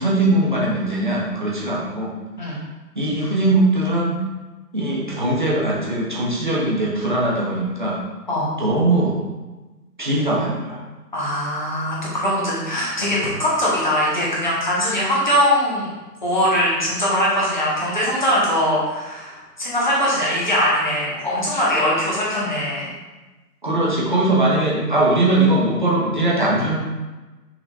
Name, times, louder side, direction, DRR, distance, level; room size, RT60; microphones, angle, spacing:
voice 1, 0.0-2.1 2.9-4.2 4.7-8.0 8.6-9.2 10.0-10.8 23.6-26.7, right 2 dB, 30° right, -5 dB, 1.2 m, -20 dB
voice 2, 11.1-15.9 16.2-22.9, equal, 30° left, -7 dB, 1.6 m, -21 dB
6.1 x 4.0 x 4.1 m, 1.2 s
figure-of-eight pair, 160°, 49 cm